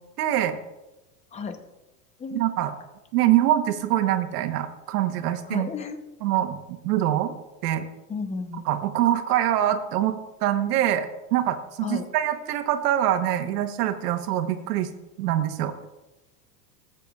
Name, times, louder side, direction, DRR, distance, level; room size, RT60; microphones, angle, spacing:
voice 1, 0.2-0.6 2.3-2.7 3.1-5.7 6.2-7.3 7.6-7.9 8.6-14.9 15.2-15.7, right 12 dB, 75° right, 7 dB, 1.1 m, -24 dB
voice 2, 5.5-6.0 8.1-8.6 11.8-12.0, left 5 dB, 15° left, 8 dB, 0.6 m, -32 dB
15.0 x 8.2 x 2.4 m, 1.0 s
supercardioid pair, 135°, 47 cm